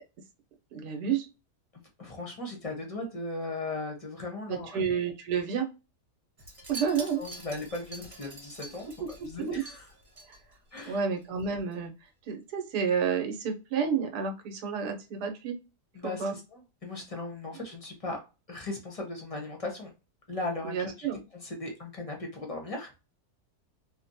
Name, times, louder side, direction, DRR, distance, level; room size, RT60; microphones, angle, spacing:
voice 1, 0.7-1.3 4.5-5.7 6.7-7.2 9.0-9.6 10.3-10.4 10.9-15.6 16.0-16.3 20.6-21.2, right 6 dB, 80° right, 5 dB, 1.3 m, -30 dB
voice 2, 2.0-4.8 7.2-8.9 9.2-9.9 10.7-11.0 15.9-18.2 18.5-19.9 20.3-21.1 21.4-22.9, left 2 dB, 35° left, 1 dB, 0.6 m, -37 dB
Wind chime, 6.4-10.9 11.2-11.4 11.7-11.8, right 2 dB, 25° right, 1.2 m, -46 dB
3.2 x 2.2 x 2.6 m, 0.29 s
omnidirectional pair, 1.7 m